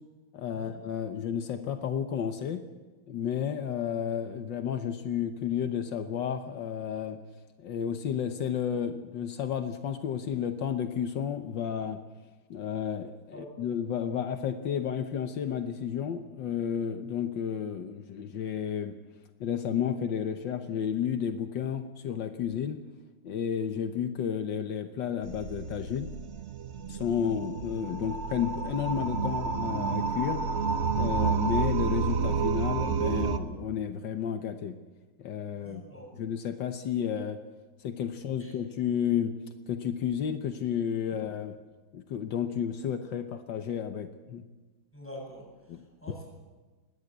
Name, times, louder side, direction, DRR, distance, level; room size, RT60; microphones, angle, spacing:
voice 1, 0.3-2.6 3.1-7.2 7.6-12.0 12.5-18.9 19.4-22.8 23.2-26.1 26.9-30.4 31.0-34.7 35.2-35.8 36.1-37.4 37.8-39.3 39.7-41.5 41.9-44.4 45.7-45.8, left 8 dB, 80° left, 7 dB, 1.7 m, -32 dB
sound 1, 25.2-33.4, right 5 dB, 45° right, 1.0 m, -30 dB
voice 2, 35.6-36.1 38.4-38.5 44.9-46.2, equal, 5° left, -2 dB, 8.0 m, -46 dB
21.0 x 16.5 x 8.0 m, 1.3 s
omnidirectional pair, 2.0 m